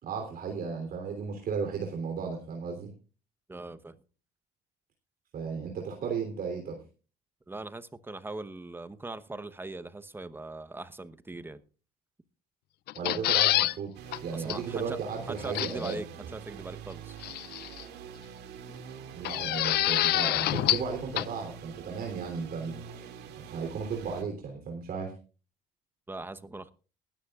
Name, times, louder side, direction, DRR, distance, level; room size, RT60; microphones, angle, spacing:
voice 1, 0.0-2.9 5.3-6.8 12.9-13.9 14.2-16.0 19.1-23.1 23.4-25.1, right 5 dB, 60° right, 3.3 m, -35 dB
voice 2, 3.5-4.0 7.5-11.6 14.3-15.0 15.3-17.2 26.1-26.7, right 2 dB, 10° right, 1.0 m, -40 dB
sound 1, 12.9-13.7 14.1-14.2 14.5-14.6 15.5-15.9 17.2-17.8 19.2-20.9 21.2-21.3, left 15 dB, 70° left, 0.6 m, -26 dB
sound 2, 13.9-24.2, right 8 dB, 80° right, 2.3 m, -45 dB
19.5 x 13.0 x 2.4 m
cardioid pair, 110°, 17 cm